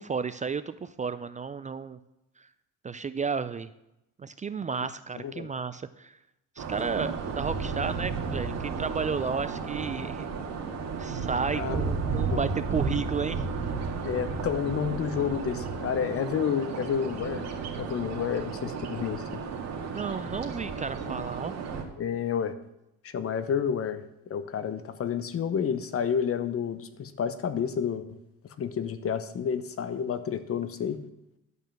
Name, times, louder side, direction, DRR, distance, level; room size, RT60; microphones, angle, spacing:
voice 1, 0.0-2.0 2.4-2.5 2.8-3.7 4.2-6.2 6.6-10.3 11.0-13.4 19.9-21.5, right 5 dB, 25° right, 13 dB, 0.4 m, -32 dB
voice 2, 5.2-5.5 11.5-11.8 12.3-12.4 14.0-17.4 17.8-19.2 22.0-22.5 23.0-24.0 24.3-28.1 28.6-31.0, left 7 dB, 45° left, 12 dB, 1.0 m, -30 dB
sound 1, 6.6-21.8, right 5 dB, 55° right, 2.1 m, -33 dB
11.0 x 5.4 x 7.5 m, 0.87 s
cardioid pair, 100°, 31 cm